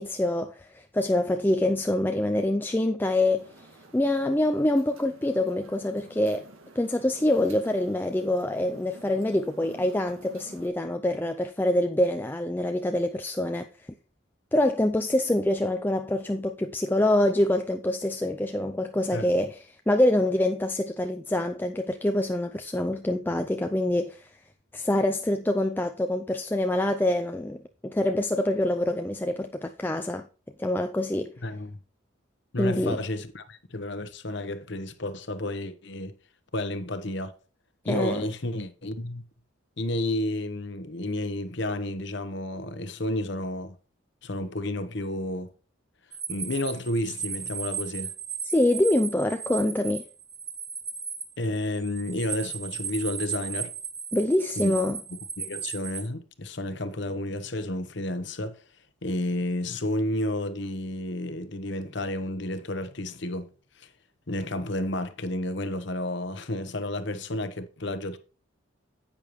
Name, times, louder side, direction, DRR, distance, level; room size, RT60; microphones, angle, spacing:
voice 1, 0.0-3.7 3.9-6.5 6.8-13.9 14.5-24.4 24.7-30.3 30.6-31.3 32.6-33.0 37.8-38.2 48.4-50.0 54.1-55.0, left 1 dB, 10° left, 0.4 m, -25 dB
sound 1, 3.4-10.7, right 2 dB, 80° right, 2.0 m, -50 dB
voice 2, 31.4-31.8 32.5-36.1 36.5-37.3 37.8-39.2 39.8-43.8 44.2-45.5 46.3-48.1 51.4-53.7 54.6-54.7 55.4-58.6 59.0-63.5 63.8-63.9 64.3-68.2, left 1 dB, 55° left, 1.0 m, -31 dB
sound 2, 46.1-56.0, right 6 dB, 15° right, 1.1 m, -36 dB
10.0 x 8.5 x 3.1 m
head